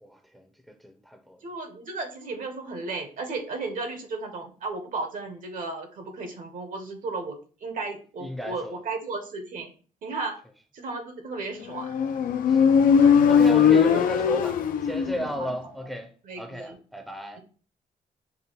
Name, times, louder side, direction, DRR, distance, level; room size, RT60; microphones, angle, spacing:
voice 1, 0.0-1.4 8.2-8.8 12.5-12.8 13.3-16.1 16.4-17.4, equal, ahead, 0.6 m, -34 dB
voice 2, 1.4-9.7 10.0-10.4 10.7-12.0 13.0-13.2 15.1-15.5 16.2-16.8 17.3-17.4, right 3 dB, 70° right, 1.1 m, -34 dB
Motorcycle, 11.7-15.4, left 7 dB, 80° left, 0.5 m, -19 dB
5.6 x 2.2 x 3.9 m
cardioid pair, 105°, 14 cm